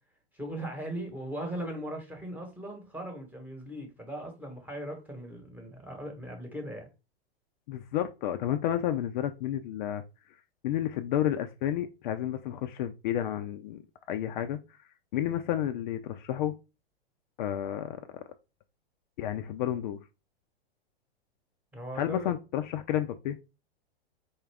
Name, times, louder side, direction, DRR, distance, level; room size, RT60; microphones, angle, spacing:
voice 1, 0.3-6.9 21.7-22.3, right 1 dB, 5° right, 1.1 m, -39 dB
voice 2, 7.7-10.0 10.6-13.8 14.1-14.6 15.1-16.6 17.4-18.2 19.2-20.0 21.9-23.5, left 11 dB, 50° left, 0.4 m, -31 dB
4.4 x 2.3 x 3.3 m
hypercardioid pair, 120°, 31 cm